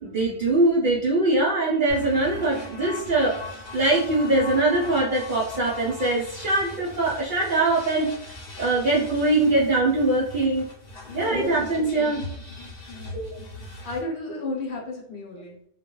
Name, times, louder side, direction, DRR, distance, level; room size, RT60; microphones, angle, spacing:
voice 1, 0.0-8.1 8.6-10.7 11.1-12.2 13.1-13.4, right 2 dB, 60° right, -5 dB, 0.5 m, -22 dB
sound 1, 1.9-14.0, left 2 dB, 40° left, 0.7 m, -40 dB
voice 2, 11.0-11.9 12.9-13.3 13.8-15.7, left 2 dB, 65° left, -2 dB, 1.0 m, -34 dB
2.2 x 2.2 x 2.9 m, 0.68 s
omnidirectional pair, 1.2 m